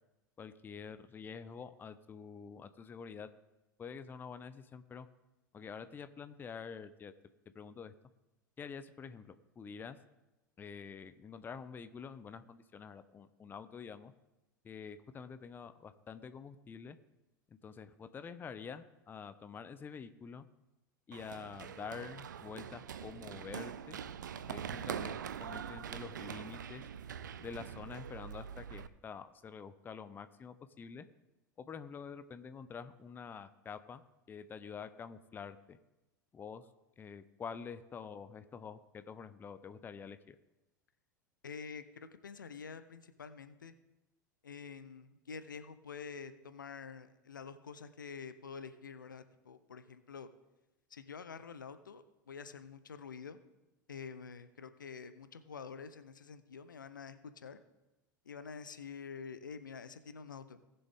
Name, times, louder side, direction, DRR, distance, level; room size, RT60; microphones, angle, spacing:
voice 1, 0.4-3.3 3.8-5.1 5.5-7.1 7.5-7.9 8.6-10.0 10.6-14.1 14.6-17.0 17.6-20.5 21.1-24.0 24.5-26.9 27.4-31.1 31.6-34.0 34.3-35.8 36.3-36.7 37.0-40.4, left 6 dB, 20° left, 12 dB, 0.6 m, -47 dB
Run, 21.1-28.9, right 8 dB, 70° right, 0.5 m, -43 dB
voice 2, 41.4-43.7 44.4-50.3 50.9-53.4 53.9-57.6 58.3-60.6, left 6 dB, 75° left, 12 dB, 0.7 m, -47 dB
18.5 x 6.9 x 3.6 m, 1.0 s
figure-of-eight pair, 85°, 11 cm